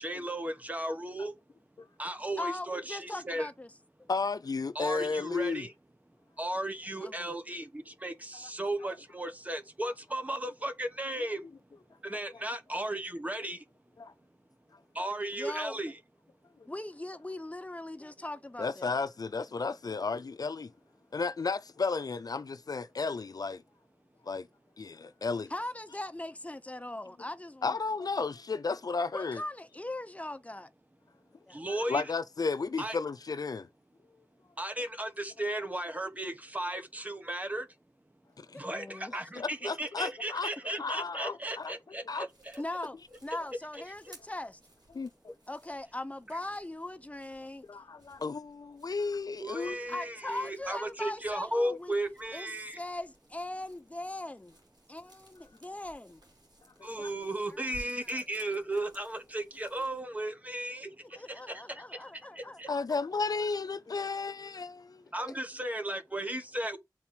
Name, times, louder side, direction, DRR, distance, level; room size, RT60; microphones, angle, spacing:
voice 1, 0.0-1.3 2.0-3.5 4.7-5.7 6.4-11.4 12.0-13.6 14.9-15.9 31.5-32.0 32.8-33.0 34.6-37.7 38.6-42.6 43.7-43.8 49.4-52.8 56.8-60.9 61.3-62.0 62.3-62.7 65.1-66.8, right 1 dB, 20° right, 1.2 m, -35 dB
voice 2, 2.4-3.7 4.0-4.1 7.0-7.3 15.3-15.8 16.6-18.9 25.5-27.8 29.1-30.7 31.5-31.6 38.7-39.1 42.6-43.0 43.2-44.6 45.5-47.7 49.9-51.9 52.3-54.6 54.9-56.2 57.5-57.6 58.2-58.3 61.2-63.0 65.2-65.4, left 1 dB, 20° left, 0.8 m, -40 dB
voice 3, 4.1-5.7 14.0-14.1 18.6-20.7 21.1-23.6 24.3-24.5 24.8-25.5 27.6-29.4 31.7-33.7 38.4-38.6 39.4-40.5 40.8-41.7 42.1-42.3 44.9-45.3 47.7-49.8 56.8-57.1 62.7-65.0, left 4 dB, 60° left, 0.5 m, -33 dB
sound 1, 42.3-60.0, equal, 80° right, 4.3 m, -59 dB
7.2 x 4.0 x 4.5 m
wide cardioid pair, 90°, 7 cm